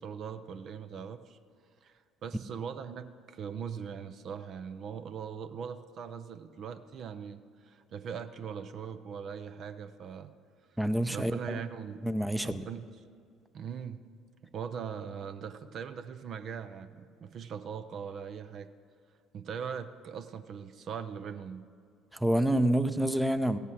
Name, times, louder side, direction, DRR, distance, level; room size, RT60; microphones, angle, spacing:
voice 1, 0.0-1.4 1.8-10.3 11.0-12.0 12.4-12.9 13.5-14.0 14.5-18.7 19.3-21.6, right 7 dB, 50° right, 10 dB, 0.6 m, -40 dB
voice 2, 10.8-11.6 12.0-12.7 22.1-23.6, right 1 dB, 5° right, 12 dB, 0.6 m, -28 dB
15.5 x 8.2 x 6.3 m, 2.3 s
hypercardioid pair, 55°, 0 cm